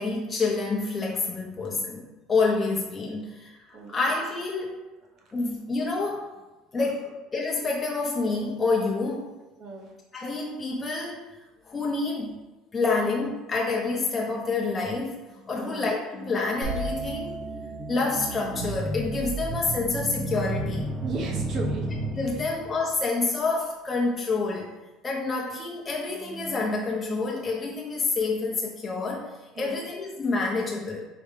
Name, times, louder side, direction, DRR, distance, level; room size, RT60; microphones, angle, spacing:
voice 1, 0.0-3.5 3.9-4.8 5.3-6.3 6.7-9.3 10.1-11.2 11.7-12.4 12.7-15.2 15.5-17.4 17.9-21.0 22.1-24.8 25.0-31.0, left 3 dB, 25° left, -2 dB, 0.8 m, -28 dB
voice 2, 9.6-9.9 15.6-15.8 21.0-21.9 22.4-22.5 29.6-29.9, right 4 dB, 50° right, 1 dB, 1.0 m, -35 dB
sound 1, 16.5-22.8, right 2 dB, 25° right, 1.0 m, -33 dB
sound 2, 16.6-20.4, right 2 dB, 80° right, 1.3 m, -37 dB
4.8 x 3.0 x 3.6 m, 1.1 s
supercardioid pair, 105°, 0 cm